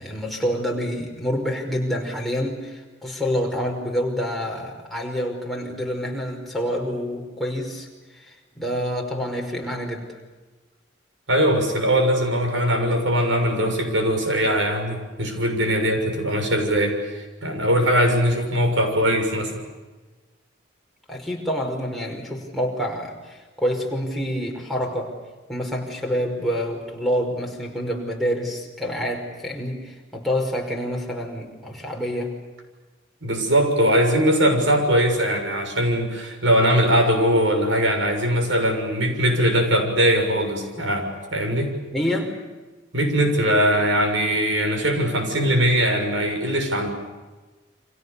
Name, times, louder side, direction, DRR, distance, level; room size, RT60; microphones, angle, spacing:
voice 1, 0.0-10.2 21.1-25.2 25.5-32.4 41.9-42.4, equal, ahead, -1 dB, 5.4 m, -27 dB
voice 2, 11.3-19.5 33.2-41.7 42.9-46.9, equal, 75° right, 5 dB, 6.8 m, -21 dB
30.0 x 25.5 x 7.0 m, 1.3 s
head